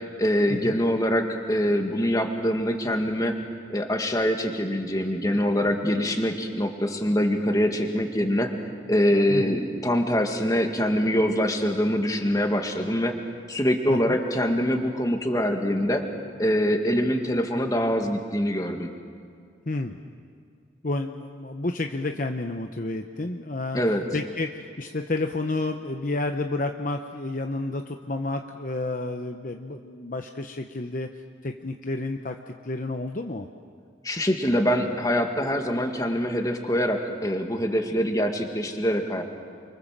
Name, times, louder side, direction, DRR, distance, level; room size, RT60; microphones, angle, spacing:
voice 1, 0.0-3.4 3.7-8.5 8.9-13.1 13.5-16.0 16.4-18.9 23.7-24.0 34.0-39.2, equal, 20° left, 4 dB, 2.0 m, -24 dB
voice 2, 9.3-9.6 13.9-14.2 19.7-20.0 20.8-23.8 24.1-31.1 31.4-33.5, left 2 dB, 45° left, 5 dB, 0.9 m, -30 dB
29.5 x 24.0 x 7.5 m, 2.1 s
head